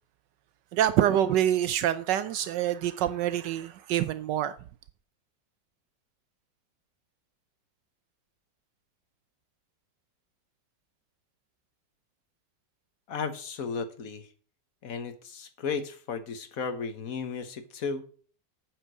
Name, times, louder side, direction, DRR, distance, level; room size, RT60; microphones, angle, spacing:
voice 1, 0.7-4.6, right 11 dB, 80° right, 1.3 m, -26 dB
voice 2, 13.1-14.3 14.8-18.1, left 5 dB, 55° left, 1.6 m, -34 dB
9.1 x 8.3 x 6.3 m
omnidirectional pair, 1.9 m